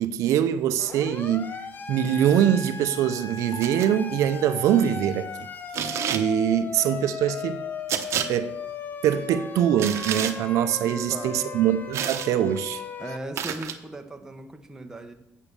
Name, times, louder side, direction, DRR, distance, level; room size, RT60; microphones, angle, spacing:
voice 1, 0.0-1.5 1.9-5.3 6.1-7.6 8.3-8.5 9.0-12.8, right 10 dB, 85° right, 0.6 m, -23 dB
Siren, 0.8-13.2, left 5 dB, 35° left, 0.8 m, -37 dB
sound 1, 3.5-5.9 7.3-8.3 9.3-10.6 11.2-13.6, equal, 70° left, 1.8 m, -47 dB
sound 2, 3.6-3.9 5.7-6.3 7.9-8.3 9.8-10.3 11.9-12.3 13.4-13.8, right 9 dB, 65° right, 0.9 m, -29 dB
voice 2, 10.8-11.5 12.3-12.5 13.0-15.1, right 2 dB, 10° right, 1.1 m, -38 dB
8.8 x 7.3 x 6.7 m
cardioid pair, 120°, 5 cm